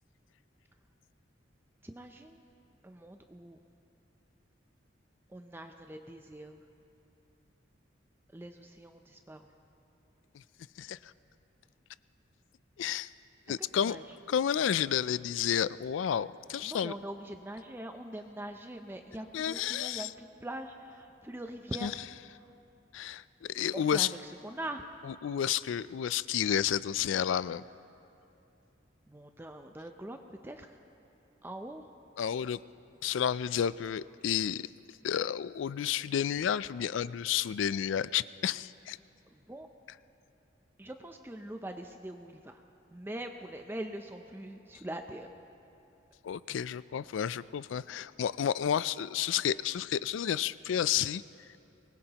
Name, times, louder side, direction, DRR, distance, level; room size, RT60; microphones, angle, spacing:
voice 1, 1.8-2.4 2.8-3.6 5.3-6.6 8.3-9.5 13.5-13.6 13.9-14.0 16.6-21.9 23.7-24.1 24.4-25.0 29.1-30.7 31.4-31.9 39.5-39.7 40.8-42.6 42.9-45.3, right 1 dB, 10° right, 5 dB, 0.5 m, -43 dB
voice 2, 10.8-11.1 12.8-13.1 13.5-14.0 14.3-16.9 19.3-20.1 21.8-21.9 22.9-24.1 25.0-27.6 32.2-32.6 33.0-34.7 35.0-39.0 46.2-51.2, left 9 dB, 80° left, 18 dB, 0.3 m, -31 dB
24.0 x 20.0 x 2.9 m, 2.8 s
head